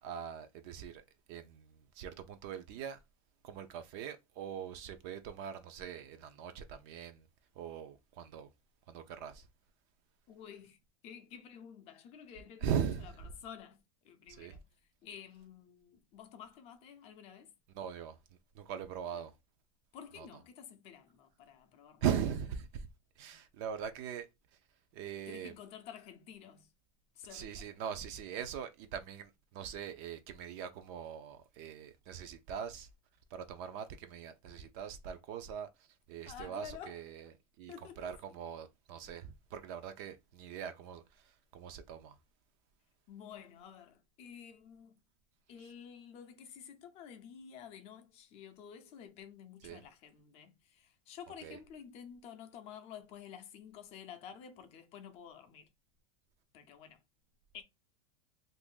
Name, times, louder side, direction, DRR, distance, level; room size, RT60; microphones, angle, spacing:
voice 1, 0.0-1.0 1.3-3.0 3.4-7.3 7.6-8.5 8.9-9.5 12.6-13.1 14.3-14.5 17.7-18.2 18.5-19.3 20.2-20.3 22.0-22.9 23.2-24.3 24.9-25.5 27.3-32.9 33.3-37.3 37.6-42.1 49.6-49.8 51.4-51.6, right 8 dB, 45° right, 0.5 m, -41 dB
voice 2, 10.3-10.8 11.0-12.7 13.0-13.1 13.4-13.8 14.0-14.6 15.0-17.5 19.1-19.3 19.9-22.1 25.3-26.7 27.1-27.6 36.3-37.0 37.7-38.1 43.1-45.0 45.5-55.7 56.5-57.0 57.5-57.6, left 8 dB, 35° left, 0.5 m, -51 dB
2.6 x 2.5 x 3.6 m
supercardioid pair, 150°, 18 cm